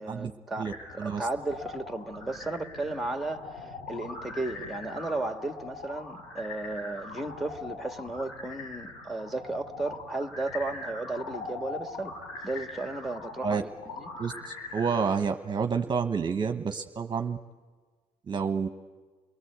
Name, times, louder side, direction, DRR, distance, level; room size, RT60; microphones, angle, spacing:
voice 1, 0.0-0.7 0.9-12.2 12.4-13.7 14.0-14.1, right 2 dB, ahead, 6 dB, 1.8 m, -34 dB
sound 1, 0.6-15.0, left 3 dB, 90° left, 5.1 m, -42 dB
voice 2, 0.6-1.3 13.4-13.6 14.2-17.4 18.3-18.7, right 6 dB, 40° right, 7 dB, 1.0 m, -29 dB
28.5 x 19.5 x 8.1 m, 1.4 s
supercardioid pair, 70°, 12 cm